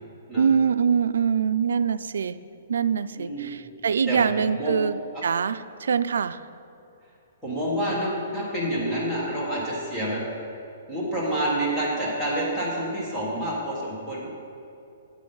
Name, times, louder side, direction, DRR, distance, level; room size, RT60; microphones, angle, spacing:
voice 1, 0.4-2.4 2.7-6.4, right 6 dB, 85° right, 14 dB, 0.3 m, -24 dB
voice 2, 3.1-3.5 4.1-4.8 5.1-5.2 7.4-10.2 10.9-14.3, right 1 dB, 10° left, -7 dB, 1.6 m, -28 dB
9.6 x 8.3 x 4.0 m, 2.8 s
hypercardioid pair, 175°, 0 cm